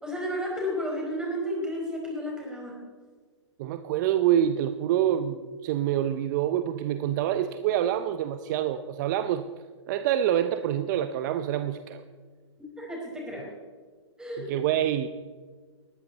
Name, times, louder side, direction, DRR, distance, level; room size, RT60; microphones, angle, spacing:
voice 1, 0.0-2.7 12.8-13.5 14.2-14.5, equal, 5° right, -3 dB, 4.9 m, -32 dB
voice 2, 3.6-9.5 9.9-12.0 14.4-15.2, right 11 dB, 40° right, 10 dB, 0.7 m, -26 dB
19.0 x 14.0 x 4.1 m, 1.5 s
hypercardioid pair, 140°, 15 cm